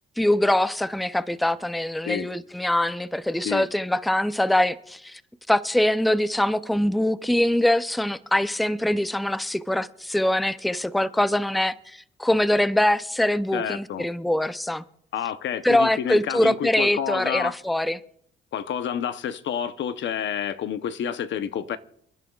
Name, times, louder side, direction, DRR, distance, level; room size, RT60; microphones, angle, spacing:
voice 1, 0.2-5.2 5.5-14.8 15.6-18.0, left 1 dB, ahead, 0.5 m, -23 dB
voice 2, 13.5-14.1 15.1-17.5 18.5-21.8, left 9 dB, 65° left, 0.8 m, -29 dB
28.5 x 10.5 x 2.4 m
cardioid pair, 90°, 20 cm